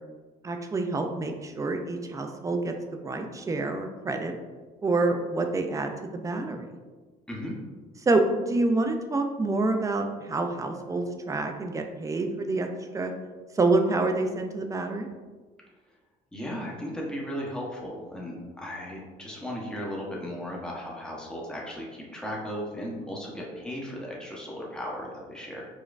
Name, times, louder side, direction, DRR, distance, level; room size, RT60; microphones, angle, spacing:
voice 1, 0.4-4.4 4.8-6.7 8.1-12.7 12.9-13.1 13.5-15.1, right 2 dB, 20° right, 5 dB, 0.4 m, -27 dB
voice 2, 16.3-25.6, equal, 5° left, -3 dB, 0.9 m, -36 dB
5.1 x 2.2 x 2.4 m, 1.3 s
cardioid pair, 110°, 17 cm